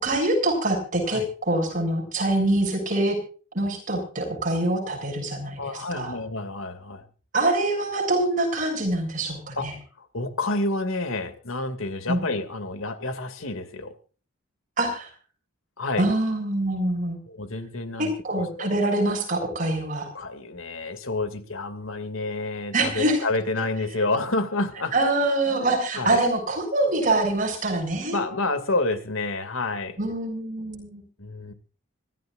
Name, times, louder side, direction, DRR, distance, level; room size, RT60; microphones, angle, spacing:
voice 1, 0.0-3.2 3.5-6.1 7.3-9.7 12.1-12.2 14.8-15.1 16.0-17.2 18.0-20.1 22.7-23.2 24.9-28.3 30.0-31.0, right 2 dB, 40° right, 2 dB, 6.8 m, -25 dB
voice 2, 5.6-7.0 9.6-9.7 10.0-13.9 15.8-16.1 17.3-18.7 20.1-24.9 25.5-25.7 26.0-26.2 28.1-30.0 31.2-31.5, left 2 dB, 75° left, 10 dB, 2.4 m, -29 dB
25.5 x 14.5 x 2.5 m, 0.39 s
head